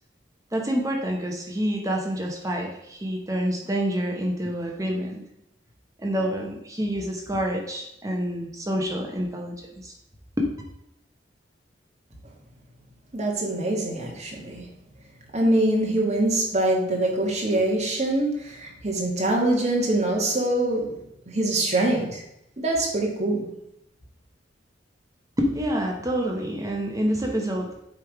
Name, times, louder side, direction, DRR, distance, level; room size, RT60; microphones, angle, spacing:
voice 1, 0.5-5.2 6.0-9.9 10.4-10.5 25.4-27.7, equal, 20° right, 0 dB, 0.9 m, -27 dB
voice 2, 13.1-14.6 15.3-20.8 21.3-22.2 22.6-23.4, right 1 dB, 35° right, -1 dB, 1.6 m, -24 dB
8.2 x 3.5 x 4.7 m, 0.82 s
head